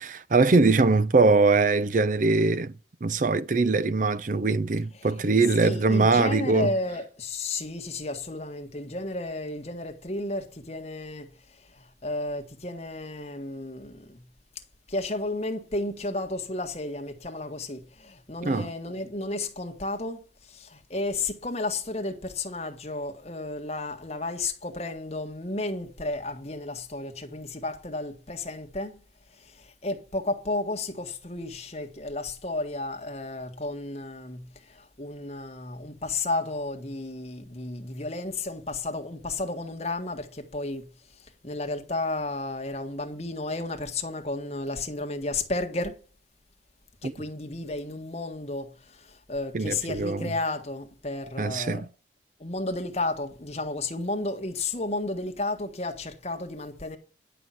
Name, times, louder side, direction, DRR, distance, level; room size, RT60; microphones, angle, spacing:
voice 1, 0.0-2.7 3.0-6.7 18.4-18.7 47.0-47.1 49.5-50.3 51.4-51.9, right 3 dB, 45° right, 0.5 m, -22 dB
voice 2, 5.6-14.2 14.9-29.0 29.4-40.9 41.4-45.9 47.0-51.8 52.4-57.0, left 2 dB, 35° left, 1.6 m, -33 dB
11.0 x 5.8 x 7.7 m
head